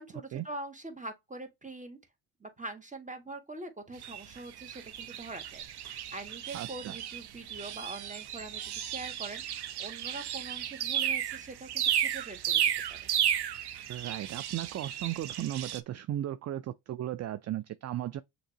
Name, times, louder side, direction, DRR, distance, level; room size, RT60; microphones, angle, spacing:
voice 1, 0.0-2.0 2.4-12.6 12.9-13.0, right 2 dB, 15° right, 1.6 m, -44 dB
sound 1, 4.0-15.8, right 10 dB, 55° right, 0.8 m, -34 dB
voice 2, 6.5-7.0 13.9-18.2, right 12 dB, 35° right, 0.4 m, -36 dB
6.5 x 2.8 x 2.8 m
supercardioid pair, 65°, 49 cm